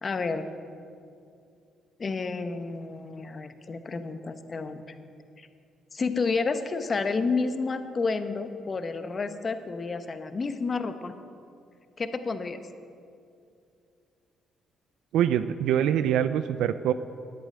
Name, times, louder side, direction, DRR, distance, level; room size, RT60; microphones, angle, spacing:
voice 1, 0.0-0.5 2.0-4.9 5.4-5.5 5.9-11.1 12.0-12.7, left 4 dB, 35° left, 9 dB, 0.9 m, -30 dB
voice 2, 15.1-16.9, right 10 dB, 85° right, 12 dB, 0.4 m, -24 dB
10.5 x 8.8 x 8.8 m, 2.4 s
cardioid pair, 90°, 0 cm